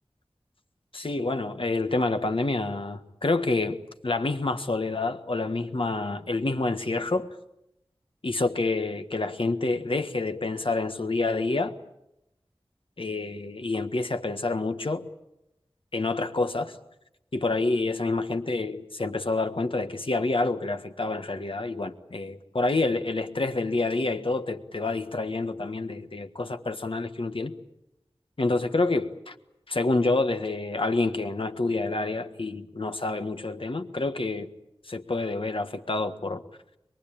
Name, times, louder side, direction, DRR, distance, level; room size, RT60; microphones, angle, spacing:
voice 1, 0.9-3.8 4.0-7.3 8.2-11.7 13.0-15.0 15.9-16.8 17.3-27.5 28.4-29.3 29.7-34.5 34.9-36.4, left 3 dB, 60° left, 1.6 m, -28 dB
24.0 x 22.5 x 8.8 m
wide cardioid pair, 50°, 10 cm